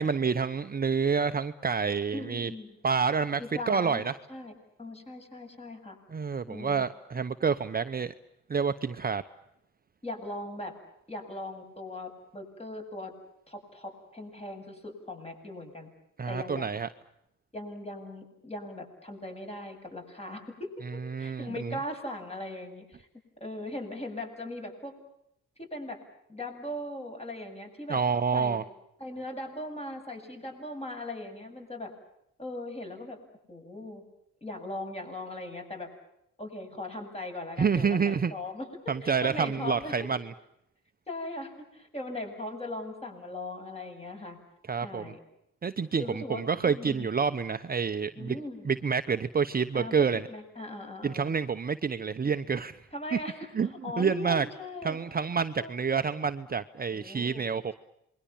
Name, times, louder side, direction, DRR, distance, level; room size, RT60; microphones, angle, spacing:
voice 1, 0.0-2.5 2.8-3.4 3.7-4.1 6.1-8.1 8.5-9.2 16.2-16.9 21.0-21.8 27.9-28.6 37.6-38.3 38.9-40.3 44.7-45.1 45.6-48.4 48.6-50.3 51.0-52.8 53.5-53.7 54.0-54.5 54.8-57.7, right 6 dB, 30° right, 9 dB, 1.0 m, -28 dB
voice 2, 2.1-2.8 3.4-4.0 4.3-4.5 4.8-6.0 6.5-6.8 10.0-10.7 11.1-13.1 13.5-15.9 16.3-16.7 17.5-23.1 23.4-24.9 25.6-26.0 26.3-28.0 28.3-28.7 29.0-31.9 32.4-33.2 33.5-34.0 34.4-35.9 36.4-39.9 41.1-44.4 44.8-45.2 46.0-47.1 48.2-48.7 49.7-51.3 52.9-55.0 55.6-55.8 56.9-57.5, left 1 dB, 20° left, 4 dB, 7.9 m, -39 dB
28.0 x 22.5 x 7.3 m, 0.80 s
cardioid pair, 90°, 30 cm